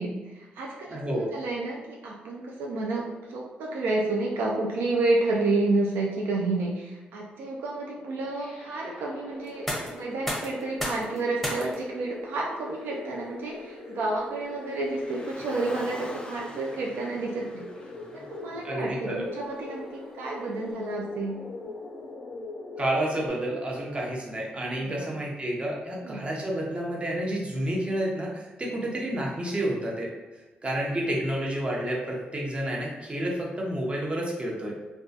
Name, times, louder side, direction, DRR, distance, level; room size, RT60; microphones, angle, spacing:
voice 1, 0.0-17.7 18.1-21.4 24.8-25.1 26.0-26.3 28.8-28.9 30.9-31.2, right 2 dB, 85° right, -2 dB, 0.3 m, -30 dB
voice 2, 0.9-1.3 18.6-19.3 22.8-30.1 30.6-34.7, right 1 dB, 35° right, -3 dB, 0.7 m, -30 dB
sound 1, 8.4-23.3, left 2 dB, 90° left, 0.5 m, -42 dB
sound 2, 9.4-21.2, equal, 5° left, 0.7 m, -41 dB
Car, 14.7-19.1, left 1 dB, 25° left, 0.4 m, -44 dB
2.2 x 2.2 x 2.6 m, 1.2 s
supercardioid pair, 60°, 3 cm